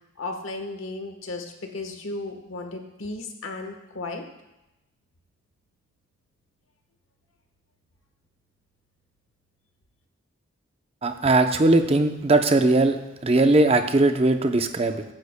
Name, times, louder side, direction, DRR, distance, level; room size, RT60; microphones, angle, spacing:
voice 1, 0.2-4.2, left 2 dB, 75° left, 4 dB, 1.2 m, -35 dB
voice 2, 11.0-13.0 13.2-15.0, right 2 dB, 30° right, 7 dB, 0.6 m, -19 dB
15.0 x 9.9 x 2.2 m, 0.94 s
head